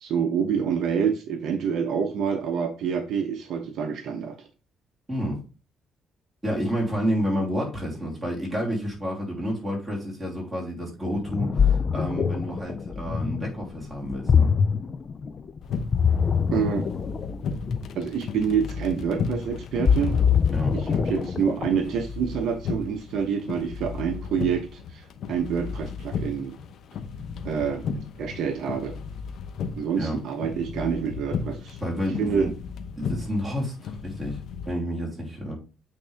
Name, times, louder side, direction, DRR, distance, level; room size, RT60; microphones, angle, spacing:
voice 1, 0.0-4.4 16.5-16.8 17.9-20.2 20.7-26.6 27.4-27.9 28.2-28.9 29.7-31.8 32.2-32.5, right 7 dB, 70° right, 5 dB, 0.9 m, -27 dB
voice 2, 5.1-5.4 6.4-14.5 20.5-20.8 28.0-28.1 30.0-30.2 31.8-32.5 33.0-35.6, equal, 15° right, -3 dB, 3.0 m, -30 dB
Ocean, 11.1-21.9, left 6 dB, 35° left, 0.4 m, -24 dB
sound 1, 15.6-34.7, left 5 dB, 65° left, 0.8 m, -35 dB
8.5 x 3.7 x 3.4 m, 0.33 s
cardioid pair, 135°, 0 cm